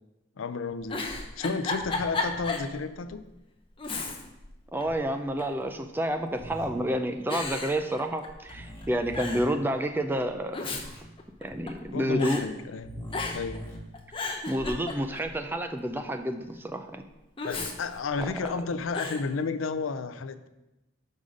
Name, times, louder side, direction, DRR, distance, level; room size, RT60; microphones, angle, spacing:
voice 1, 0.4-3.2 11.9-12.9 13.3-13.6 17.4-20.5, left 4 dB, 85° left, 12 dB, 0.5 m, -32 dB
Giggle, 0.7-2.7 3.1-3.2 3.8-4.5 4.8-5.6 6.4-6.8 7.3-8.5 8.8-8.9 9.1-9.5 10.3-11.9 12.2-12.4 13.1-13.6 13.9-15.3 17.4-18.5 18.9-19.2, left 3 dB, 25° left, 0.8 m, -34 dB
voice 2, 4.7-10.6 11.4-12.4 14.5-17.0, right 1 dB, 10° right, 6 dB, 0.4 m, -29 dB
sound 1, 6.3-6.7 8.4-9.4 10.6-11.0 12.8-13.7, equal, 10° left, 1.9 m, -42 dB
5.4 x 5.1 x 6.3 m, 0.97 s
head